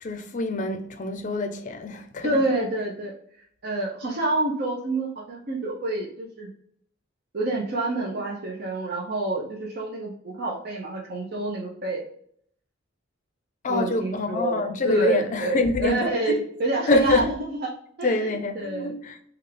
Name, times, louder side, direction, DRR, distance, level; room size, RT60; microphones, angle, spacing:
voice 1, 0.0-2.4 13.6-16.4 16.9-17.3 18.0-19.2, left 2 dB, 40° left, 0.5 m, -25 dB
voice 2, 2.2-3.1 3.6-6.5 7.3-12.0 13.7-17.7 18.0-18.9, right 2 dB, 55° right, 0.6 m, -28 dB
3.4 x 2.4 x 3.2 m
head